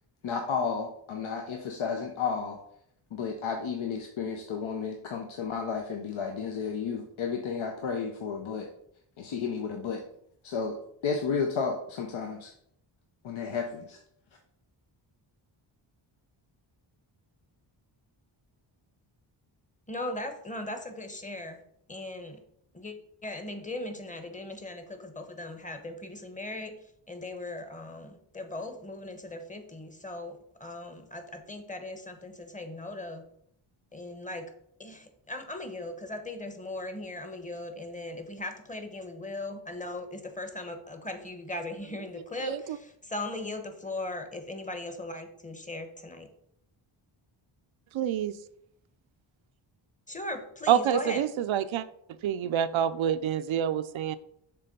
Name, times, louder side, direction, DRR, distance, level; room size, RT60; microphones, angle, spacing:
voice 1, 0.2-2.6 3.1-8.7 9.2-10.0 10.4-12.5 13.2-14.0, left 5 dB, 70° left, 3 dB, 0.8 m, -32 dB
voice 2, 19.9-21.6 21.9-22.4 22.7-22.9 23.2-26.8 27.1-33.2 33.9-34.5 34.8-46.3 50.1-51.2, left 2 dB, 15° left, 6 dB, 1.0 m, -38 dB
voice 3, 42.4-42.8 47.9-48.3 50.7-51.8 52.2-54.2, right 10 dB, 70° right, 13 dB, 0.5 m, -27 dB
6.8 x 3.3 x 5.3 m, 0.71 s
cardioid pair, 85°, 49 cm